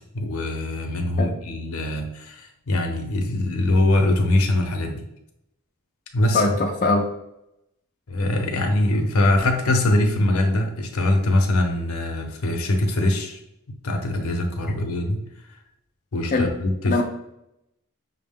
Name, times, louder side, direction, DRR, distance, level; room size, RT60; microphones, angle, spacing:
voice 1, 0.1-5.0 6.1-6.4 8.1-13.4 13.8-15.2 16.1-17.0, left 1 dB, 75° left, 4 dB, 0.7 m, -22 dB
voice 2, 6.3-7.1 16.3-16.5 16.8-17.0, left 3 dB, 35° left, 0 dB, 0.4 m, -21 dB
5.6 x 2.1 x 3.5 m, 0.84 s
head